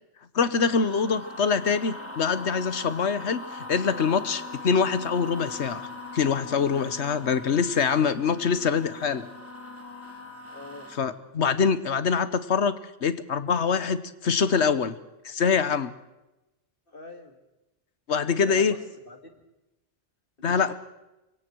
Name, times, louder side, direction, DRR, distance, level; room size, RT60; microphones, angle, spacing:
voice 1, 0.3-5.9 6.1-9.3 11.0-12.7 13.0-15.0 15.2-15.9 18.1-18.7 20.4-20.7, left 6 dB, 75° left, 14 dB, 1.4 m, -24 dB
sound 1, 0.7-11.0, left 2 dB, 10° left, 2.7 m, -41 dB
voice 2, 10.5-10.9 16.9-17.4 18.5-19.3 20.4-20.7, left 3 dB, 50° left, 5 dB, 2.7 m, -44 dB
26.0 x 24.0 x 4.6 m, 0.99 s
omnidirectional pair, 1.2 m